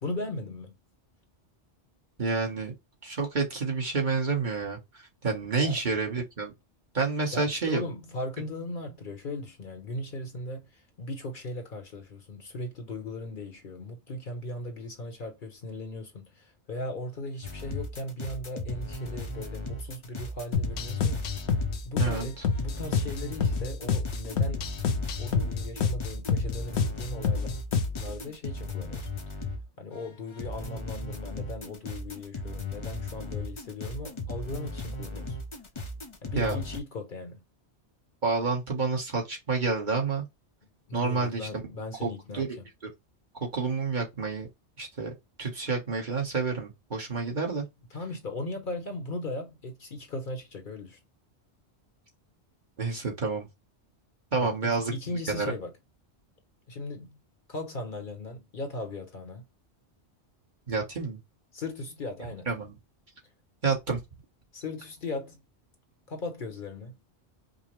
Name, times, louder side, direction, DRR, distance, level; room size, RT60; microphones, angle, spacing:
voice 1, 0.0-0.7 5.6-5.7 7.3-21.3 21.8-24.8 25.2-27.6 28.0-29.1 29.8-35.4 36.2-37.4 40.9-42.5 47.9-51.0 54.4-55.7 56.7-57.2 57.5-59.4 61.5-62.5 64.5-65.4 66.1-67.0, left 2 dB, 50° left, 1.0 m, -38 dB
voice 2, 2.2-2.7 3.0-6.5 6.9-7.8 22.0-22.4 36.3-36.6 38.2-40.2 40.9-41.5 42.0-42.5 43.4-44.5 44.8-45.1 45.4-47.6 52.8-53.5 54.3-54.9 55.3-55.5 60.7-61.2 62.5-62.8 63.6-64.0, right 4 dB, 45° right, 1.2 m, -29 dB
sound 1, 17.4-29.7 29.9-36.8, left 2 dB, 30° left, 0.6 m, -37 dB
sound 2, 20.5-28.1, left 5 dB, 75° left, 0.9 m, -28 dB
5.2 x 2.1 x 3.0 m
omnidirectional pair, 1.1 m